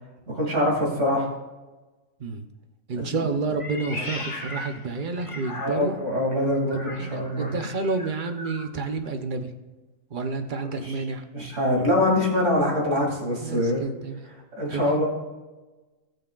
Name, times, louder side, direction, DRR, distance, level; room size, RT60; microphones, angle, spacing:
voice 1, 0.3-1.3 2.9-3.2 5.6-7.5 10.7-10.9 11.3-13.8 14.6-15.1, left 1 dB, 60° right, -3 dB, 3.0 m, -24 dB
voice 2, 2.9-6.0 6.7-9.5 10.1-11.2 13.4-14.2 14.7-15.0, right 3 dB, 40° right, 7 dB, 0.9 m, -30 dB
Meow, 3.5-6.1 6.7-8.7, left 1 dB, 25° left, 1.3 m, -38 dB
19.0 x 6.7 x 2.4 m, 1.2 s
omnidirectional pair, 1.4 m